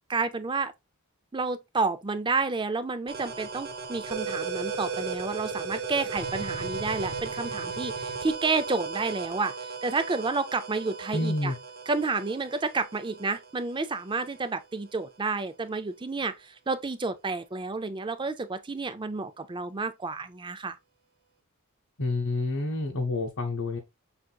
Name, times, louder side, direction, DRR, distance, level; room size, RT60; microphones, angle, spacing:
voice 1, 0.1-0.7 1.3-11.5 11.9-20.8, right 4 dB, 20° right, 0.5 m, -30 dB
sound 1, 3.1-14.5, right 5 dB, 45° right, 1.0 m, -36 dB
voice 2, 11.1-11.6 22.0-23.8, left 2 dB, 70° left, 0.9 m, -28 dB
5.9 x 3.8 x 2.3 m
head